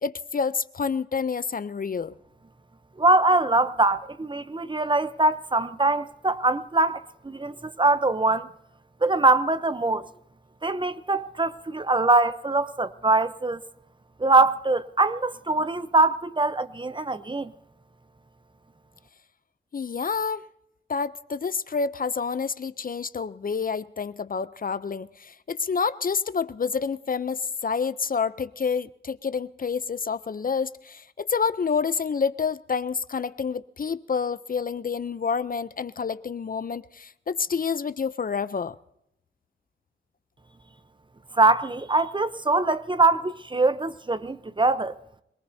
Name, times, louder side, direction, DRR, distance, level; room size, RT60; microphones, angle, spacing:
voice 1, 0.0-2.1 19.7-20.4 20.9-38.7, left 5 dB, 45° left, 0.5 m, -28 dB
voice 2, 3.0-8.5 9.0-10.0 10.6-13.7 14.2-17.5 41.3-44.9, right 2 dB, 25° right, 0.7 m, -23 dB
26.0 x 19.0 x 2.7 m
wide cardioid pair, 75°, 20 cm